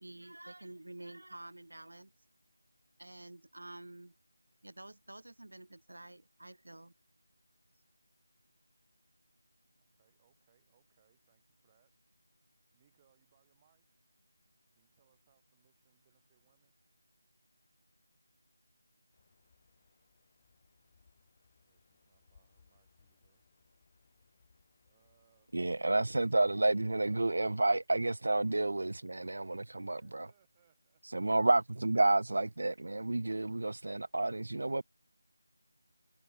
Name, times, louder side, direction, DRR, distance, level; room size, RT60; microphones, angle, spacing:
voice 1, 0.0-2.1 3.0-4.2 4.6-6.9, right 1 dB, 80° right, 2.1 m, -49 dB
voice 2, 9.8-12.0 12.7-13.9 14.7-16.7 21.6-23.5 24.8-25.5 29.6-31.3, right 10 dB, 10° right, 7.8 m, -74 dB
sound 1, 19.1-26.9, left 5 dB, 15° left, 7.2 m, -70 dB
voice 3, 25.5-30.3 31.1-34.8, right 2 dB, 50° right, 0.4 m, -30 dB
figure-of-eight pair, 180°, 0 cm